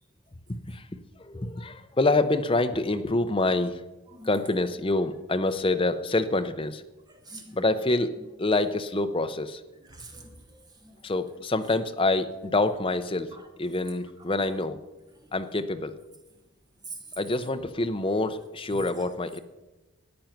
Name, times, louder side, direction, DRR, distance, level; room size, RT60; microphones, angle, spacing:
voice 1, 0.5-0.9 1.2-3.8 4.2-6.8 7.5-8.1 8.4-9.6 11.0-13.3 13.6-14.8 15.3-16.0 17.2-19.4, left 2 dB, 25° left, 0.6 m, -26 dB
voice 2, 7.3-7.6 9.9-11.0 13.3-13.4 16.9-17.0 18.7-19.1, right 2 dB, 15° right, 1.2 m, -44 dB
14.0 x 9.2 x 5.9 m
head